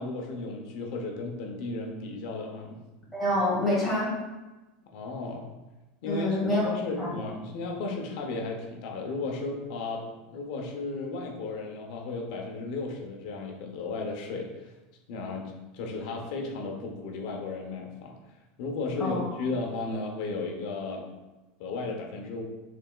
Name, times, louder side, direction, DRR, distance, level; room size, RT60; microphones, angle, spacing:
voice 1, 0.0-2.8 4.9-5.5 6.0-14.7 15.1-18.2 18.6-21.1 21.6-22.4, left 3 dB, 50° left, 1 dB, 0.8 m, -34 dB
voice 2, 3.1-4.1 6.1-6.7 7.0-7.1 19.0-19.3, left 1 dB, ahead, -8 dB, 1.3 m, -26 dB
6.0 x 3.4 x 2.3 m, 1.1 s
supercardioid pair, 180°, 5 cm